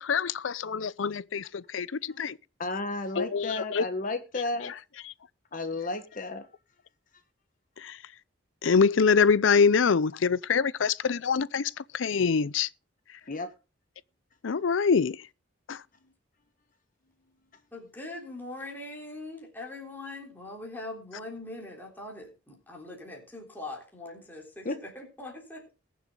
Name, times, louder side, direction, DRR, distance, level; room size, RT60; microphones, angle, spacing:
voice 1, 0.0-2.4 3.2-3.8 7.8-8.0 8.6-12.7 14.4-15.2 15.7-15.8, left 5 dB, 85° left, 0.6 m, -25 dB
voice 2, 2.6-4.7 5.5-6.5 13.2-13.5 24.6-24.8, left 2 dB, 45° left, 1.3 m, -33 dB
voice 3, 17.7-25.7, left 2 dB, 10° left, 3.6 m, -42 dB
21.0 x 7.2 x 3.8 m
head